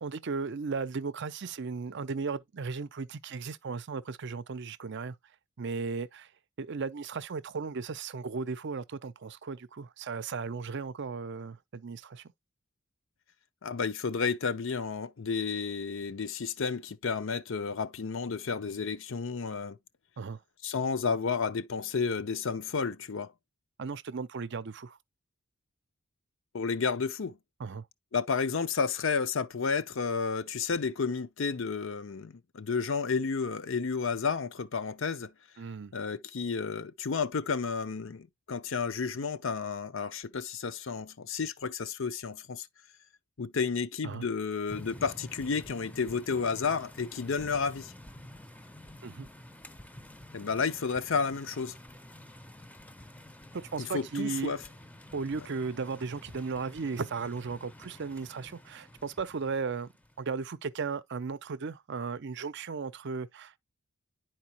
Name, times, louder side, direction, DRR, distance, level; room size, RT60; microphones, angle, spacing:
voice 1, 0.0-5.2 5.6-6.3 6.6-12.2 20.2-20.4 23.8-25.0 27.6-27.9 35.6-35.9 44.0-44.2 49.0-49.3 53.5-54.5 55.1-59.9 60.2-63.6, right 5 dB, 55° right, 0.5 m, -36 dB
voice 2, 13.6-19.8 20.6-23.3 26.5-27.4 28.1-35.3 35.9-42.7 43.4-47.9 50.3-51.8 53.8-54.6, left 5 dB, 60° left, 0.6 m, -31 dB
sound 1, 44.7-60.2, left 1 dB, 5° left, 0.6 m, -50 dB
10.5 x 4.4 x 2.9 m
head